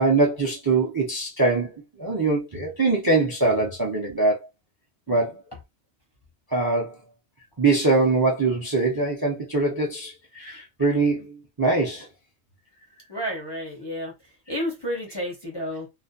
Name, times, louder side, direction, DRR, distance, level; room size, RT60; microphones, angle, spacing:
voice 1, 0.0-1.7 2.0-4.4 5.1-5.3 6.5-6.9 7.6-12.1, right 3 dB, 30° right, 0.4 m, -22 dB
voice 2, 13.1-14.1 14.5-15.9, equal, 30° left, 0.5 m, -31 dB
2.4 x 2.1 x 2.5 m
omnidirectional pair, 1.1 m